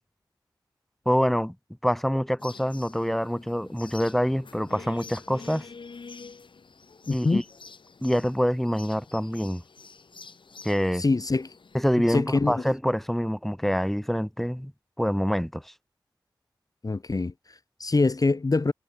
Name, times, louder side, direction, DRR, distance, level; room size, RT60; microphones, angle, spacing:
voice 1, 1.1-1.5 1.8-5.7 7.1-7.4 8.0-9.6 10.6-11.0 11.7-14.7 15.0-15.7, equal, 5° left, 2.6 m, -26 dB
sound 1, 2.4-11.8, left 4 dB, 80° left, 3.9 m, -47 dB
voice 2, 7.1-7.4 10.9-11.5 12.1-12.6 16.8-18.7, left 3 dB, 50° left, 1.3 m, -25 dB
cardioid pair, 45°, 8 cm